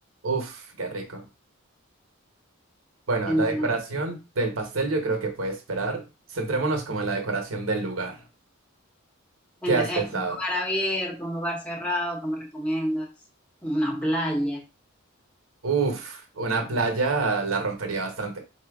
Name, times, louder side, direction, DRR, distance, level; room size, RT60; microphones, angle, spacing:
voice 1, 0.2-1.2 3.1-6.0 6.3-8.2 9.7-10.4 15.6-18.4, right 3 dB, 75° right, 3 dB, 1.0 m, -27 dB
voice 2, 3.3-3.7 9.6-13.1 13.6-14.6, equal, 5° left, 0 dB, 1.0 m, -27 dB
4.3 x 2.2 x 3.4 m, 0.29 s
head